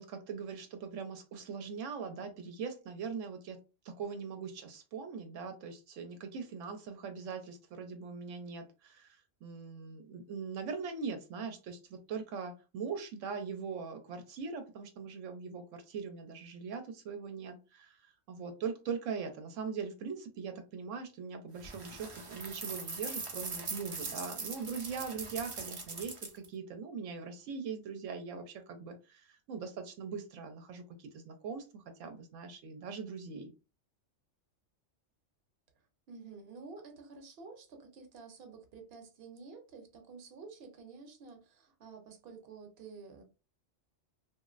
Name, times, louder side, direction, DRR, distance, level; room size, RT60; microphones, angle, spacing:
voice 1, 0.0-3.6 3.8-33.5, right 5 dB, 85° right, 0.9 m, -41 dB
sound 1, 21.6-26.5, right 4 dB, 40° right, 0.5 m, -41 dB
voice 2, 36.1-43.2, right 4 dB, 55° right, 0.9 m, -50 dB
2.9 x 2.4 x 2.4 m
omnidirectional pair, 1.3 m